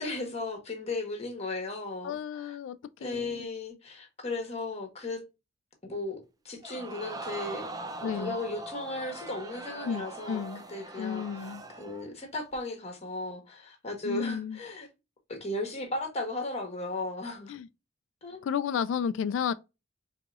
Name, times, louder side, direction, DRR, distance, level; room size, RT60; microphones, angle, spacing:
voice 1, 0.0-2.6 3.0-5.2 5.8-6.2 6.4-7.7 8.0-10.4 10.7-14.9 15.3-17.5 18.2-18.5, left 2 dB, 35° left, 1.2 m, -36 dB
voice 2, 2.0-3.5 8.0-8.4 9.8-10.6 11.0-11.6 14.0-14.6 17.5-17.7 18.4-19.5, left 7 dB, 70° left, 0.3 m, -32 dB
Crowd, 6.6-12.1 12.5-12.6, right 2 dB, 20° right, 0.5 m, -41 dB
4.6 x 2.8 x 2.4 m
head